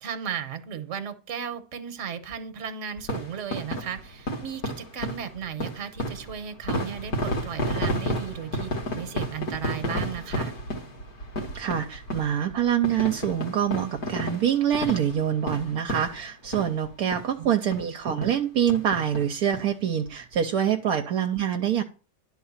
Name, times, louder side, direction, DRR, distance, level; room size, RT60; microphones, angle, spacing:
voice 1, 0.0-8.7 8.9-10.5 17.4-17.5, right 8 dB, 55° right, 10 dB, 1.2 m, -35 dB
sound 1, 3.0-16.9 17.1-17.3 17.7-17.8 18.2-18.4 18.7-19.6 20.1-20.2 20.3-20.4, equal, 65° left, 2.1 m, -32 dB
voice 2, 11.5-21.8, right 9 dB, 70° right, 5 dB, 1.2 m, -25 dB
11.0 x 4.1 x 7.2 m, 0.37 s
omnidirectional pair, 1.7 m